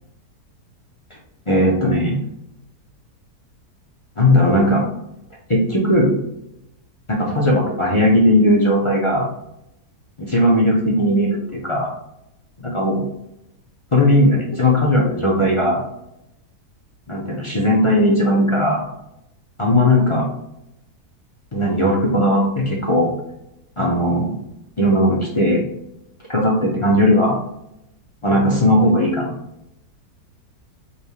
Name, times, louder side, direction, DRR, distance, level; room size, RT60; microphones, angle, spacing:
voice 1, 1.5-2.2 4.2-4.8 5.5-6.2 7.1-9.3 10.2-11.9 12.6-13.0 13.9-15.8 17.1-18.9 19.6-20.3 21.5-23.1 23.8-24.4 24.8-25.6 26.3-27.4 28.2-29.4, left 1 dB, 40° left, -4 dB, 0.4 m, -17 dB
5.2 x 3.3 x 2.3 m, 0.82 s
omnidirectional pair, 1.8 m